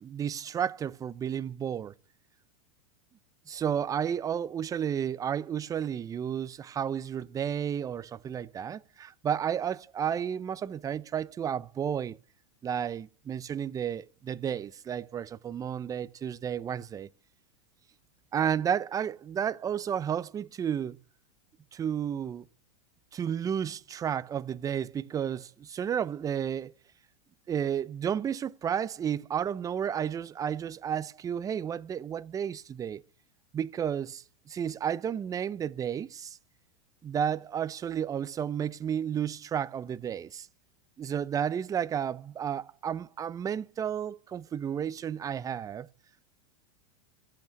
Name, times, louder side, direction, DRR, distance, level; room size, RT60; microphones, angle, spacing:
voice 1, 0.0-1.9 3.5-12.2 12.6-17.1 18.3-21.0 21.7-22.4 23.1-26.7 27.5-33.0 33.5-36.4 37.0-40.5 41.0-45.9, right 8 dB, 20° right, 0.6 m, -32 dB
13.5 x 8.3 x 9.1 m
supercardioid pair, 125°, 17 cm